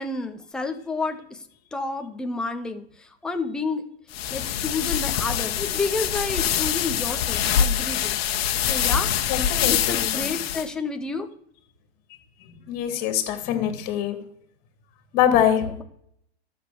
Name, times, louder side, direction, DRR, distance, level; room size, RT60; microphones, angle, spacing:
voice 1, 0.0-1.4 1.7-3.9 4.3-8.2 8.7-9.1 9.7-11.3 15.6-15.8, left 3 dB, ahead, 5 dB, 0.5 m, -30 dB
sound 1, 4.1-10.6, left 9 dB, 60° left, 1.2 m, -24 dB
voice 2, 9.3-10.4 12.7-14.2 15.1-15.6, left 10 dB, 25° left, 6 dB, 2.6 m, -23 dB
13.5 x 7.0 x 6.9 m, 0.67 s
supercardioid pair, 165°, 33 cm